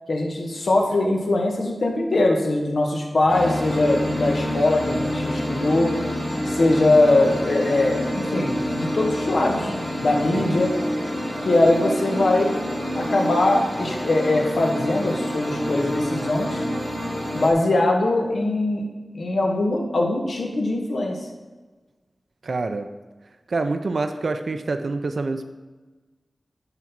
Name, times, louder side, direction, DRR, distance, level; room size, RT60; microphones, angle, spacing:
voice 1, 0.1-5.9 6.5-9.7 10.0-10.7 11.4-12.6 12.9-16.6 17.3-18.9 19.1-21.2, left 2 dB, 80° left, 1 dB, 1.6 m, -21 dB
sound 1, 3.3-17.5, equal, 50° left, 2.5 m, -27 dB
voice 2, 22.4-22.9 23.5-25.4, right 3 dB, 70° right, 8 dB, 0.6 m, -26 dB
11.0 x 4.1 x 6.0 m, 1.3 s
wide cardioid pair, 80°, 0 cm